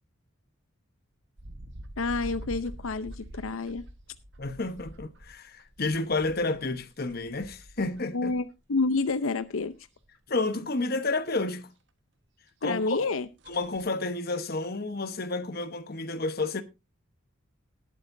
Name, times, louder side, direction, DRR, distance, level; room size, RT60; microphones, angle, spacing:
sound 1, 1.4-8.5 8.9-9.7 10.0-10.2 10.5-10.6 12.7-12.8 13.1-13.2 13.4-13.9, right 1 dB, 60° right, 1.4 m, -46 dB
voice 1, 2.0-3.8 8.1-9.7 12.6-13.3, left 3 dB, 85° left, 0.7 m, -29 dB
voice 2, 4.4-8.3 10.3-11.7 12.6-13.1 13.5-16.6, left 3 dB, 50° left, 1.1 m, -30 dB
19.0 x 8.6 x 2.6 m
head